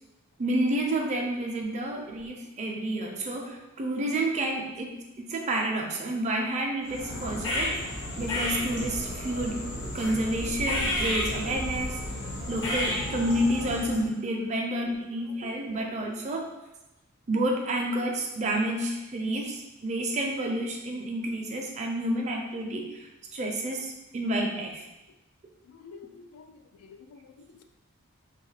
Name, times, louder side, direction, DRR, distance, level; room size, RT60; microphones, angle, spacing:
voice 1, 0.4-5.0 5.3-12.0 12.5-16.5 17.3-24.9, right 1 dB, 30° right, 1 dB, 0.4 m, -30 dB
sound 1, 6.9-14.1, left 1 dB, 60° left, 0.7 m, -32 dB
voice 2, 25.7-27.6, left 5 dB, 80° left, 6 dB, 0.3 m, -50 dB
2.6 x 2.3 x 3.2 m, 1.0 s
head